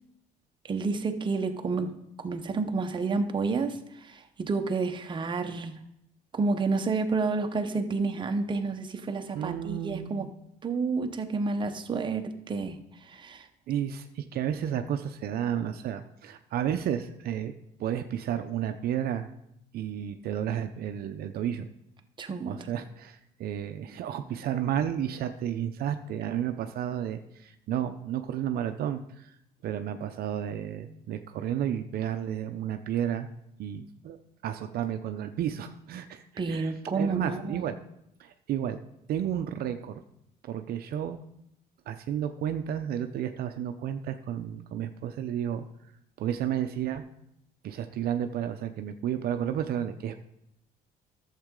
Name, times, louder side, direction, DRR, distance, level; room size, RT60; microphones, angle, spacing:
voice 1, 0.7-5.8 6.3-10.3 10.6-13.5 22.2-22.6 36.4-37.6, right 4 dB, 30° right, 6 dB, 0.8 m, -30 dB
voice 2, 9.3-10.3 13.7-17.5 17.8-19.3 19.7-21.7 22.4-29.3 29.6-33.3 33.6-34.2 34.4-37.8 38.2-38.8 39.1-40.0 40.4-41.2 41.9-45.6 46.2-47.0 47.6-50.1, right 10 dB, 65° right, 8 dB, 0.6 m, -32 dB
12.0 x 7.4 x 3.7 m, 0.78 s
cardioid pair, 110°, 17 cm